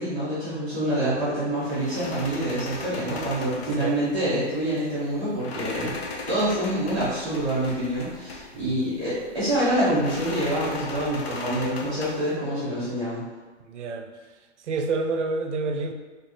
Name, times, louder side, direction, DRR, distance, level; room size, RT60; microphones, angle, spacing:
voice 1, 0.0-6.0 6.3-13.2, right 1 dB, 5° right, -19 dB, 0.3 m, -26 dB
sound 1, 1.6-12.4, left 3 dB, 60° left, 0.7 m, -38 dB
voice 2, 13.7-14.1 14.7-15.9, right 3 dB, 75° right, 5 dB, 0.6 m, -28 dB
3.4 x 2.1 x 4.2 m, 1.3 s
hypercardioid pair, 160°, 36 cm